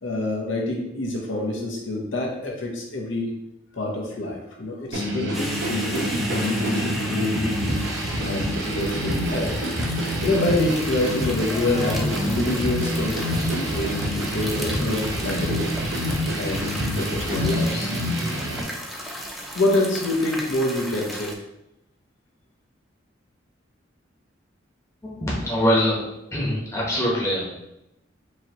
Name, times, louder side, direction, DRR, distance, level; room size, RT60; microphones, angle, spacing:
voice 1, 0.0-3.3 3.8-7.7 8.2-9.5 10.2-13.2 13.5-13.9 14.3-15.7 16.4-16.7 17.0-17.9 19.5-21.3, left 2 dB, 75° left, -1 dB, 0.8 m, -26 dB
sound 1, 4.9-18.6, equal, 75° right, 0.7 m, -26 dB
sound 2, 5.3-21.3, equal, ahead, 0.3 m, -35 dB
voice 2, 25.0-26.0 26.3-27.7, equal, 15° left, -5 dB, 0.9 m, -23 dB
4.7 x 2.8 x 2.9 m, 0.87 s
head